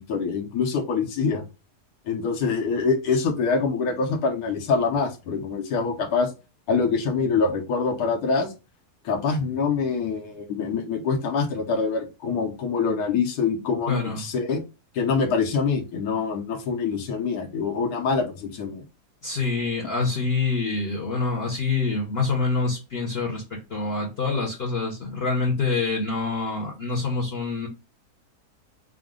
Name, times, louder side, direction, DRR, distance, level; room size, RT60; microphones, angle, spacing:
voice 1, 0.1-1.5 2.1-6.3 6.7-8.5 9.0-14.6 14.9-18.8, left 5 dB, 75° left, 1.3 m, -25 dB
voice 2, 13.9-14.3 19.2-27.7, left 3 dB, 45° left, 1.0 m, -26 dB
5.1 x 2.1 x 3.6 m
omnidirectional pair, 1.7 m